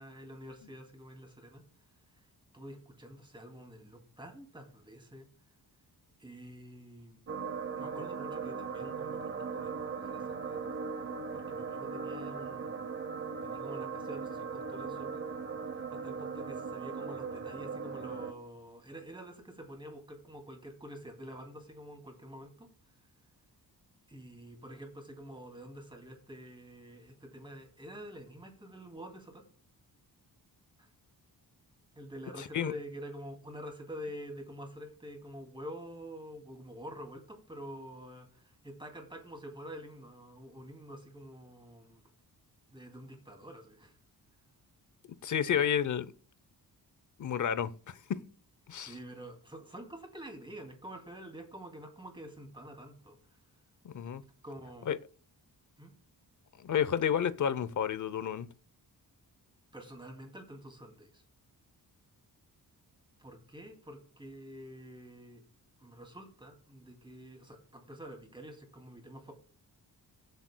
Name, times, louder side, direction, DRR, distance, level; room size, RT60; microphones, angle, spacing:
voice 1, 0.0-1.6 2.2-2.3 2.5-5.3 6.2-7.2 7.8-13.0 13.4-15.3 15.7-22.7 24.1-29.4 30.8-30.9 32.0-42.0 42.7-44.0 48.8-53.4 54.4-54.9 55.8-55.9 59.7-61.2 63.2-65.4 65.8-69.3, equal, 10° right, 2.5 m, -47 dB
sound 1, 7.3-18.3, right 5 dB, 35° right, 0.8 m, -38 dB
voice 2, 32.4-32.7 45.2-46.1 47.2-48.2 48.7-48.9 53.8-54.2 54.9-55.0 56.6-58.5, left 8 dB, 50° left, 0.7 m, -31 dB
22.5 x 8.2 x 2.2 m
wide cardioid pair, 155°, 39 cm